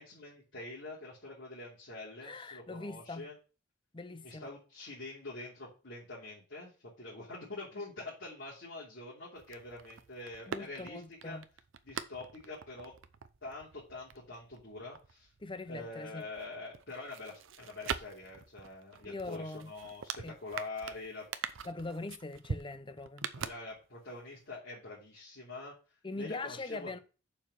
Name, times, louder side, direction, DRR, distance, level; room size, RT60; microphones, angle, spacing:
voice 1, 0.0-3.3 4.2-11.4 11.8-12.9 13.4-15.3 15.7-21.6 23.3-25.7 26.1-27.0, left 2 dB, 65° left, 3.0 m, -45 dB
voice 2, 2.2-3.3 3.9-4.5 10.5-11.4 15.4-16.3 19.1-19.7 20.2-20.4 21.6-23.3 26.0-27.0, left 3 dB, 25° left, 0.6 m, -42 dB
sound 1, 9.3-15.9 16.2-24.2 24.4-24.5, right 6 dB, 80° right, 0.7 m, -44 dB
7.1 x 4.7 x 6.3 m
head